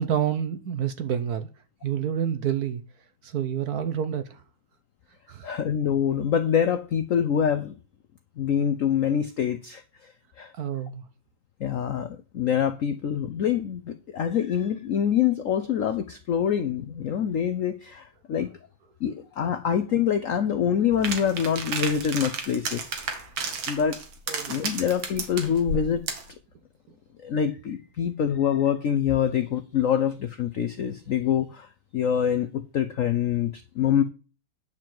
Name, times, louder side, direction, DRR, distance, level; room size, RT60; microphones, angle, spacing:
voice 1, 0.0-1.5 1.8-2.8 3.2-4.4 5.3-5.5 10.6-11.0 24.3-24.6, right 9 dB, 60° right, 1.2 m, -28 dB
voice 2, 5.4-7.8 8.4-10.5 11.6-18.5 19.0-22.9 23.7-24.0 24.5-26.0 27.2-34.0, left 8 dB, 65° left, 0.8 m, -25 dB
sound 1, 21.0-26.3, right 4 dB, 85° right, 2.3 m, -32 dB
9.4 x 4.5 x 7.6 m
omnidirectional pair, 2.1 m